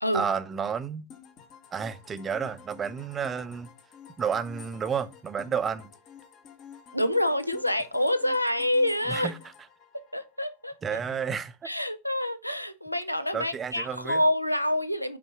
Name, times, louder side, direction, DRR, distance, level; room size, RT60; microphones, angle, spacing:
voice 1, 0.1-1.1 1.7-3.7 4.2-5.9 9.1-9.3 10.8-11.7 13.3-14.2, right 6 dB, 20° right, 0.5 m, -31 dB
sound 1, 1.1-10.8, left 7 dB, 35° left, 1.0 m, -50 dB
voice 2, 6.9-9.3 9.9-11.0 11.6-15.2, left 1 dB, 90° left, 0.5 m, -27 dB
5.4 x 4.3 x 5.6 m
figure-of-eight pair, 90°, 0 cm